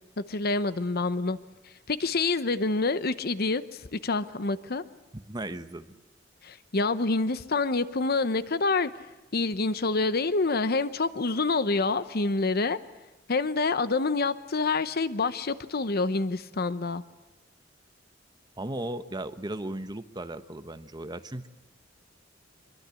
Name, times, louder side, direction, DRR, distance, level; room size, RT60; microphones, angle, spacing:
voice 1, 0.3-1.4 1.9-4.8 6.4-8.9 9.3-12.8 13.3-17.0, left 3 dB, 55° left, 0.9 m, -27 dB
voice 2, 5.1-6.0 18.6-21.5, right 1 dB, 20° right, 1.1 m, -36 dB
25.0 x 23.0 x 8.4 m
head